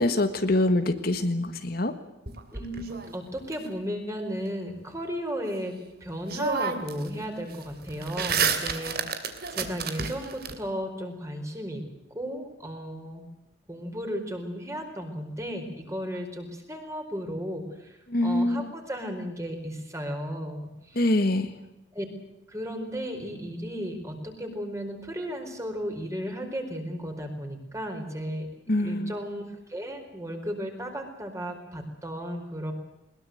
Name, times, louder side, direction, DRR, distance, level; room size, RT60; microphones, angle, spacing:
voice 1, 0.0-1.9 18.1-18.7 20.9-21.5 28.7-29.1, left 1 dB, 50° left, 8 dB, 1.6 m, -24 dB
sound 1, 2.3-3.5 5.8-5.9 6.3-7.1 7.4-10.5, right 5 dB, 50° right, 2.8 m, -30 dB
voice 2, 2.5-9.0 9.5-13.2 13.7-21.1 21.9-22.0 22.5-28.5 28.8-32.7, equal, 15° right, 4 dB, 4.6 m, -35 dB
21.5 x 21.5 x 7.9 m, 0.93 s
head